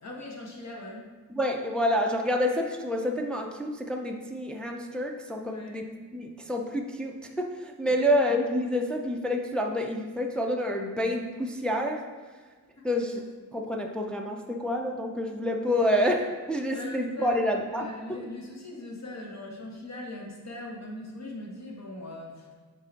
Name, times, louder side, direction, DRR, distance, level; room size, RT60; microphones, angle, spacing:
voice 1, 0.0-1.1 5.4-5.8 12.8-12.9 16.7-17.4 17.7-22.5, left 1 dB, 50° left, -1 dB, 1.1 m, -40 dB
voice 2, 1.3-5.8 6.1-12.0 12.8-13.2 13.5-18.2, equal, 5° left, 1 dB, 0.4 m, -28 dB
6.5 x 3.7 x 4.0 m, 1.4 s
wide cardioid pair, 135°, 35 cm